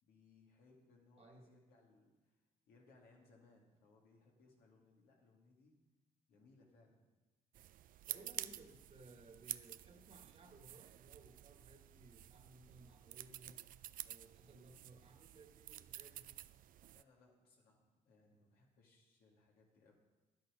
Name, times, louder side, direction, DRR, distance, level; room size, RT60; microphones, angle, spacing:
voice 1, 0.0-2.4 2.7-5.7 6.3-7.0 16.9-19.9, left 3 dB, 85° left, -1 dB, 2.4 m, -68 dB
voice 2, 1.2-1.6 8.1-13.7 14.0-16.4, right 3 dB, 45° right, 4 dB, 1.7 m, -61 dB
sound 1, 7.5-17.0, right 12 dB, 65° right, 0.4 m, -51 dB
11.0 x 8.8 x 5.1 m, 1.1 s
cardioid pair, 80°, 15 cm